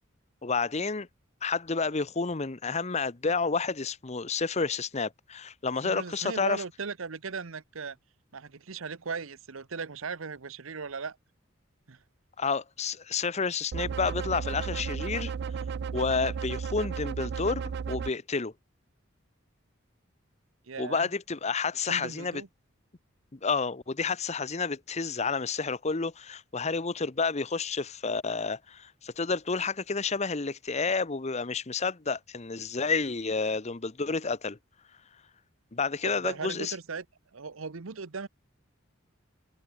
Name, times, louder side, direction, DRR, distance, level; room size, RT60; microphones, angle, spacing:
voice 1, 0.4-1.1 1.4-6.6 12.4-15.3 15.9-17.6 17.9-18.5 20.8-22.4 23.3-34.6 35.7-36.7, left 4 dB, 35° left, 0.8 m, -30 dB
voice 2, 5.8-8.0 8.3-11.2 11.9-12.0 20.7-21.1 21.9-22.5 36.0-37.0 37.3-38.3, right 5 dB, 80° right, 0.9 m, -37 dB
sound 1, 13.7-18.1, right 6 dB, 55° right, 0.3 m, -34 dB
head